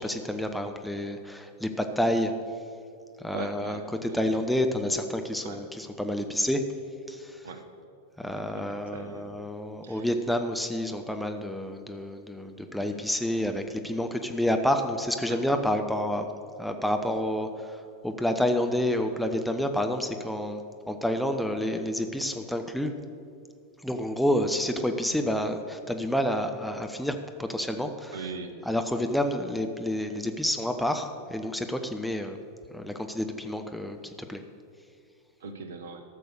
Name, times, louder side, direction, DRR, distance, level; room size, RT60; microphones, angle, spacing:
voice 1, 0.0-2.3 3.2-6.6 7.1-7.4 8.2-16.3 16.6-20.6 20.9-22.9 23.8-28.2 28.7-32.4 32.7-34.4, left 1 dB, ahead, 6 dB, 0.7 m, -29 dB
voice 2, 3.3-4.3 5.4-5.6 7.4-7.6 8.4-8.7 8.9-9.3 9.8-10.1 15.3-15.4 28.1-28.5 35.4-36.0, right 4 dB, 60° right, 7 dB, 1.1 m, -40 dB
13.5 x 6.7 x 6.5 m, 2.4 s
figure-of-eight pair, 90°, 0 cm